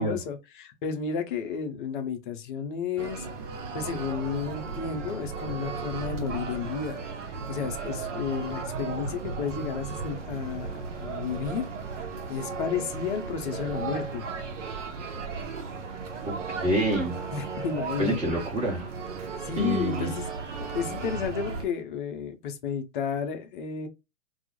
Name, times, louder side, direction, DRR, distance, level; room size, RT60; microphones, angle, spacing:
voice 1, 0.0-3.3 3.7-11.6 12.3-14.3 17.3-18.3 19.4-20.3 20.6-23.9, left 6 dB, 40° left, 0.5 m, -32 dB
sound 1, 3.0-21.7, right 4 dB, 65° right, 0.7 m, -35 dB
voice 2, 16.2-17.1 18.0-18.9 19.6-20.1, right 1 dB, 15° right, 1.0 m, -27 dB
2.2 x 2.0 x 2.8 m
hypercardioid pair, 120°, 40 cm